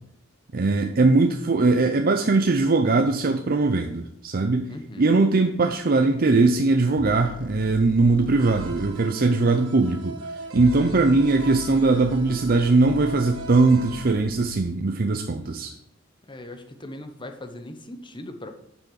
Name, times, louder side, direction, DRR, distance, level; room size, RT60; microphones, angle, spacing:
voice 1, 0.5-4.7 5.0-15.7, right 3 dB, 45° right, 5 dB, 0.6 m, -20 dB
voice 2, 4.7-5.1 10.7-11.2 15.4-15.6 16.2-18.5, left 1 dB, 25° left, 7 dB, 1.0 m, -40 dB
sound 1, 7.0-9.0 10.4-14.8, left 4 dB, 40° left, 0.5 m, -41 dB
sound 2, 8.4-14.0, right 3 dB, 75° right, 1.7 m, -40 dB
8.6 x 6.1 x 5.8 m, 0.73 s
head